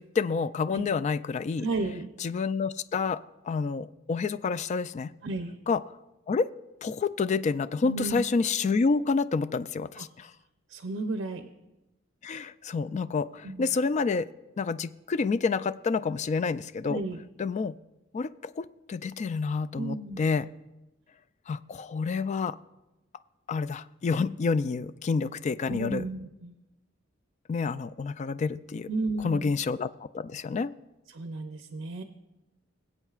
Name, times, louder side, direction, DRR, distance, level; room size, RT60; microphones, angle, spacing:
voice 1, 0.0-1.7 2.2-5.1 5.7-5.8 6.3-6.5 6.8-10.3 12.2-14.3 14.6-17.0 17.4-17.7 18.1-20.5 21.5-22.6 23.5-26.0 27.5-28.9 29.2-30.7, left 4 dB, 35° left, 14 dB, 0.3 m, -28 dB
voice 2, 1.6-2.1 5.2-5.6 7.8-8.2 10.0-10.1 10.7-11.5 13.4-13.8 16.9-17.2 19.8-20.3 25.7-26.5 28.9-29.6 31.1-32.0, right 2 dB, 60° right, 6 dB, 0.6 m, -33 dB
23.0 x 8.1 x 2.4 m, 0.98 s
head